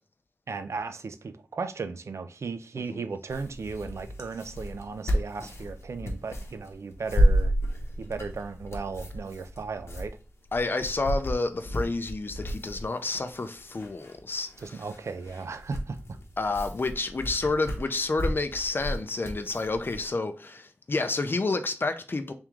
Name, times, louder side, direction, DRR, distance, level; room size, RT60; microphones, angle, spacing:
voice 1, 0.5-7.5 8.0-10.2 14.6-16.2, right 4 dB, 90° right, 0.3 m, -36 dB
sound 1, 3.3-20.1, equal, 70° left, 0.8 m, -31 dB
voice 2, 10.5-14.8 16.4-22.3, left 3 dB, 50° left, 0.5 m, -29 dB
3.5 x 3.0 x 3.5 m
wide cardioid pair, 85°, 5 cm